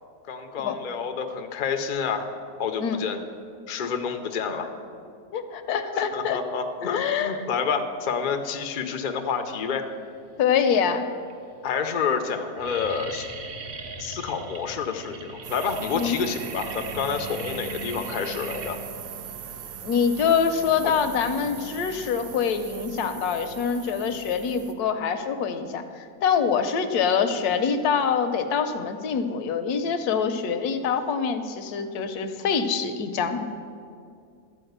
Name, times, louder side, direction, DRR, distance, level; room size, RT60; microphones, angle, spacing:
voice 1, 0.3-2.3 2.6-3.2 3.7-4.7 6.1-9.9 11.6-13.3 14.0-18.8, left 6 dB, 55° left, 6 dB, 0.5 m, -28 dB
voice 2, 5.3-6.4 6.8-7.4 10.4-11.1 15.9-16.2 19.8-33.5, left 6 dB, 75° left, 9 dB, 1.2 m, -25 dB
sound 1, 10.0-10.5 11.2-11.3 11.6-12.0 12.2-21.2, right 3 dB, 50° right, 0.7 m, -40 dB
sound 2, 15.4-24.7, right 8 dB, 85° right, 1.3 m, -40 dB
12.5 x 4.6 x 7.9 m, 2.3 s
omnidirectional pair, 1.7 m